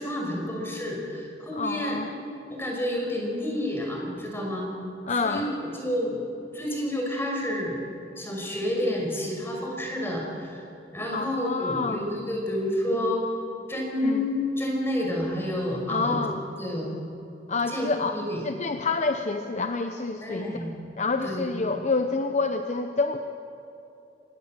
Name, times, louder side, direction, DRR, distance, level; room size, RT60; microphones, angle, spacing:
voice 1, 0.0-2.0 2.5-4.7 5.2-6.2 6.5-7.8 8.2-10.6 10.9-13.2 13.7-16.2 16.6-16.9 17.7-18.4 20.2-20.7 21.2-21.6, left 1 dB, 15° left, -1 dB, 5.6 m, -29 dB
voice 2, 1.5-2.1 5.1-5.5 11.1-12.0 14.0-14.3 15.9-16.4 17.5-18.2 18.4-20.5 21.0-23.2, left 3 dB, 40° left, 7 dB, 0.8 m, -27 dB
25.5 x 20.0 x 7.6 m, 2.8 s
head